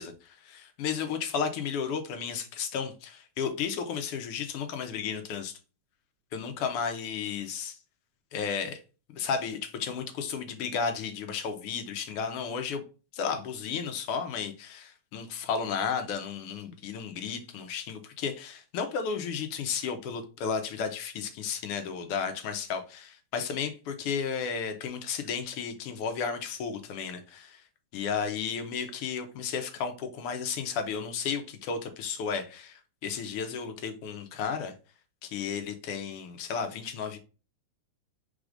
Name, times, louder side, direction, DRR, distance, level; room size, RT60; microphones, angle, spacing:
voice 1, 0.0-5.5 6.3-7.8 8.3-8.8 9.1-12.8 13.1-27.6 27.9-34.7 35.2-37.2, left 6 dB, 90° left, 1.8 m, -33 dB
4.9 x 4.1 x 2.5 m
omnidirectional pair, 2.4 m